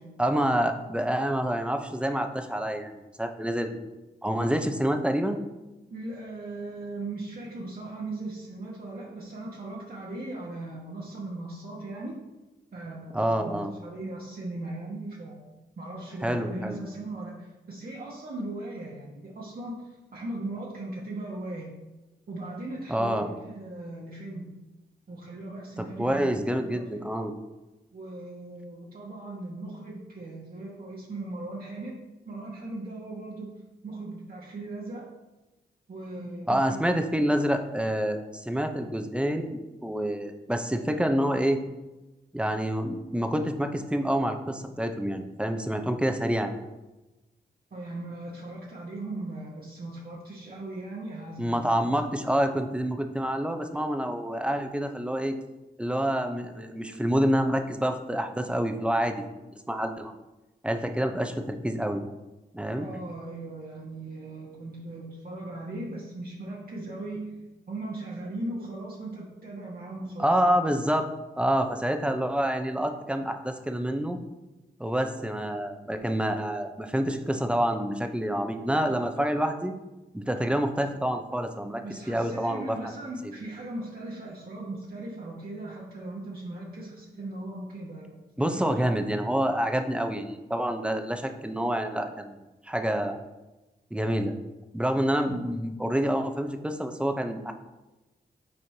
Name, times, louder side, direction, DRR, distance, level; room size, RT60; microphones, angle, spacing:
voice 1, 0.2-2.9 3.2-3.8 4.2-5.4 13.1-13.7 16.2-16.8 22.9-23.3 25.8-27.3 36.5-41.6 42.3-46.6 51.4-55.4 55.8-59.2 59.7-60.1 60.6-62.0 62.5-62.9 70.2-71.1 71.4-74.2 74.8-79.7 80.1-82.8 83.2-83.3 88.4-92.4 92.6-93.2 93.9-94.3 94.7-97.5, equal, 5° right, 6 dB, 0.7 m, -27 dB
voice 2, 5.9-12.2 12.7-15.5 15.8-21.7 22.3-24.5 25.1-27.0 27.9-31.9 32.2-33.5 33.8-35.1 35.9-36.8 47.7-51.4 62.8-67.3 67.7-70.6 79.1-79.2 81.8-88.8, right 2 dB, 55° right, -5 dB, 1.3 m, -38 dB
7.8 x 4.3 x 2.8 m, 1.1 s
supercardioid pair, 45°, 19 cm